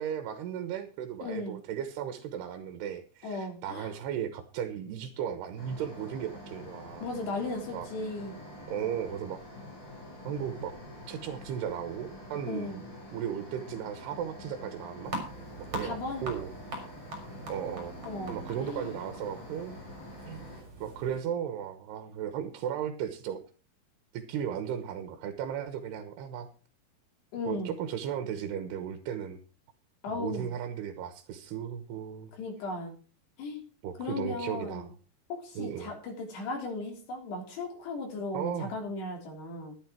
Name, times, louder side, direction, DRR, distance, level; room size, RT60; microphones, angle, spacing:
voice 1, 0.0-7.1 7.7-7.9 8.7-9.4 10.3-10.8 11.1-12.8 13.1-15.1 15.6-16.5 17.5-17.9 18.3-19.8 20.3-20.4 20.8-23.4 24.1-26.5 27.5-29.4 30.1-32.3 33.8-34.9 35.6-35.9 38.3-38.7, right 9 dB, 85° right, 9 dB, 3.2 m, -36 dB
voice 2, 1.2-1.6 3.2-3.9 7.0-8.4 12.5-12.8 15.8-16.3 18.1-19.0 27.3-27.7 30.0-30.5 32.4-33.0 33.4-33.6 34.0-34.9 35.3-39.7, left 2 dB, 90° left, 2 dB, 5.3 m, -36 dB
sound 1, 5.6-20.6, left 1 dB, 25° left, 6.3 m, -46 dB
sound 2, 15.0-21.2, right 1 dB, 35° right, 5.1 m, -42 dB
12.5 x 11.0 x 4.5 m, 0.38 s
omnidirectional pair, 4.7 m